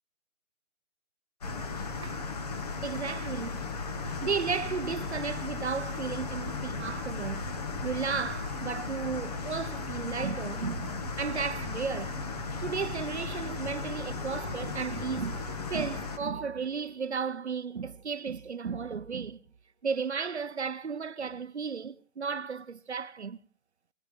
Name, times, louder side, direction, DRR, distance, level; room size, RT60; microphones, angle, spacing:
sound 1, 1.4-16.2, left 4 dB, 30° left, 2.1 m, -36 dB
voice 1, 2.8-3.6 4.0-7.5 7.8-12.2 12.5-15.4 15.7-19.4 19.8-23.4, right 5 dB, 55° right, 0.9 m, -34 dB
sound 2, 13.5-19.3, left 2 dB, 5° left, 1.0 m, -52 dB
22.5 x 17.0 x 3.6 m
hypercardioid pair, 170°, 40 cm